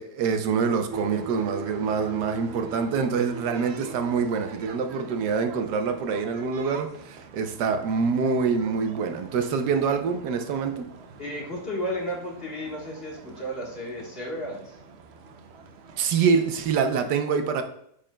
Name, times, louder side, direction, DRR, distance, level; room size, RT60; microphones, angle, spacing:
voice 1, 0.0-10.9 16.0-17.6, right 5 dB, 90° right, 1.3 m, -25 dB
sound 1, 0.9-17.1, right 4 dB, 70° right, 0.6 m, -43 dB
voice 2, 11.2-14.7, equal, 40° left, 1.5 m, -33 dB
8.5 x 5.2 x 2.2 m
omnidirectional pair, 1.8 m